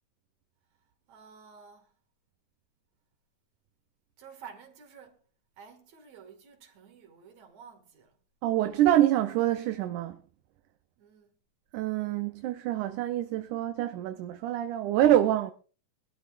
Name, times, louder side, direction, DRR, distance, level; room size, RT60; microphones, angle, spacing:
voice 1, 1.1-1.9 4.2-5.2 5.6-8.2 11.0-11.3, right 6 dB, 60° right, 3.2 m, -51 dB
voice 2, 8.4-10.2 11.7-15.5, right 12 dB, 75° right, 2.2 m, -26 dB
23.5 x 13.0 x 2.5 m
omnidirectional pair, 3.7 m